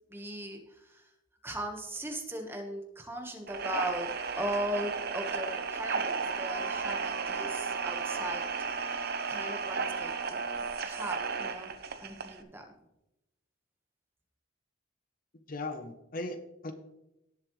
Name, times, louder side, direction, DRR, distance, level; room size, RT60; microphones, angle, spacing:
voice 1, 0.1-1.1 1.4-8.5 8.8-12.7, equal, 10° right, 3 dB, 1.2 m, -39 dB
sound 1, 3.5-12.4, right 5 dB, 50° right, 0.8 m, -34 dB
voice 2, 15.5-16.7, left 2 dB, 45° left, 8 dB, 0.8 m, -38 dB
17.5 x 7.3 x 3.1 m, 0.90 s
head